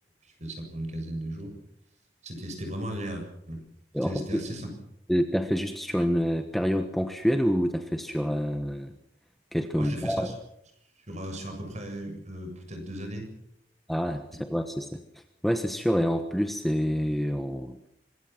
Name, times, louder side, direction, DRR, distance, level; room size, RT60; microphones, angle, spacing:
voice 1, 0.4-1.5 2.2-3.6 4.0-4.7 9.8-10.3 11.1-13.3, right 1 dB, 40° right, 4 dB, 7.6 m, -36 dB
voice 2, 3.9-4.4 5.1-8.9 9.5-10.3 13.9-17.9, equal, ahead, 6 dB, 1.3 m, -27 dB
25.5 x 21.5 x 6.1 m, 0.76 s
head